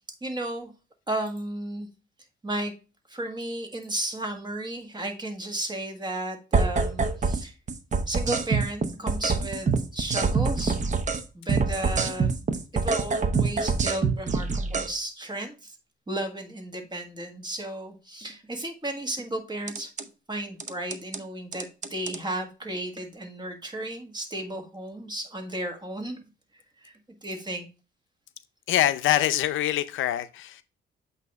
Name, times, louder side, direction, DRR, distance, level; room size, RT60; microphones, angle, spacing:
voice 1, 0.2-0.7 1.1-1.9 2.4-2.7 3.1-7.5 8.1-10.8 11.3-15.8 16.1-19.9 20.3-26.2 26.8-26.9 27.2-27.7, right 1 dB, 20° right, 1.7 m, -34 dB
sound 1, 6.5-7.4 7.7-11.2 11.5-14.9 19.7-20.0 20.6-21.2 21.5-22.2, right 4 dB, 35° right, 0.8 m, -25 dB
voice 2, 28.7-30.6, left 12 dB, 80° left, 0.5 m, -24 dB
8.1 x 2.8 x 4.6 m
cardioid pair, 90°, 20 cm